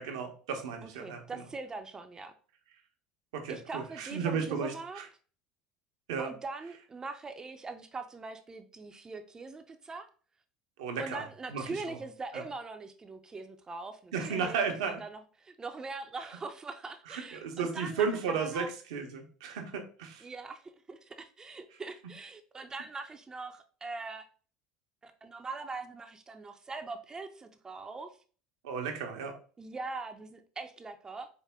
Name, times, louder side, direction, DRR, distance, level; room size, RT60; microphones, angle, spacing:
voice 1, 0.0-1.4 3.3-5.0 6.1-6.3 10.8-11.2 11.5-12.0 12.3-12.4 14.1-15.0 17.1-20.3 28.6-29.3, right 5 dB, 80° right, 4 dB, 0.9 m, -34 dB
voice 2, 0.8-2.3 3.5-5.0 6.2-10.1 11.0-18.7 20.2-24.3 25.0-28.1 29.6-31.3, right 3 dB, 25° right, 7 dB, 0.5 m, -42 dB
4.8 x 2.1 x 3.5 m, 0.41 s
hypercardioid pair, 80°, 3 cm